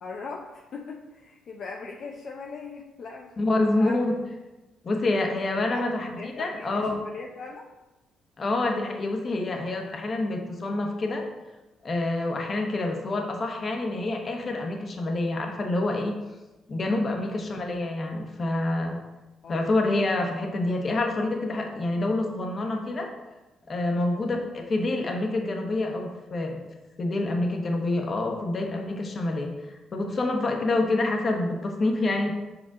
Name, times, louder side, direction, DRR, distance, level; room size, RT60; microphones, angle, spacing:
voice 1, 0.0-3.4 3.8-4.0 5.7-5.9 6.2-7.7 17.0-17.3 19.4-19.7 23.9-24.2, left 4 dB, 60° left, 0 dB, 0.6 m, -40 dB
voice 2, 3.4-4.1 4.8-7.0 8.4-11.3 11.8-16.2 16.7-19.0 19.5-23.1 23.7-26.6 27.0-32.3, left 2 dB, 40° left, 2 dB, 1.1 m, -27 dB
5.7 x 5.0 x 3.7 m, 1.1 s
cardioid pair, 90°, 0 cm